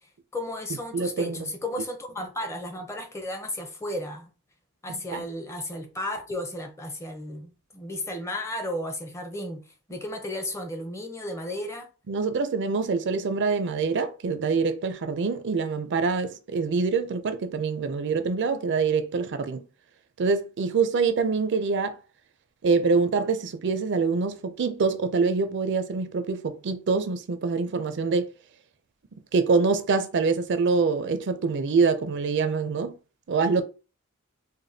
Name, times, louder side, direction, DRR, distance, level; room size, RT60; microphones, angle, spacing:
voice 1, 0.3-4.3 4.8-11.9, left 1 dB, 15° left, 0.6 m, -34 dB
voice 2, 0.9-1.4 5.1-5.2 12.1-19.6 20.2-22.0 22.6-28.3 29.3-32.9 33.3-33.6, right 4 dB, 55° right, 0.4 m, -25 dB
4.9 x 2.2 x 2.7 m
head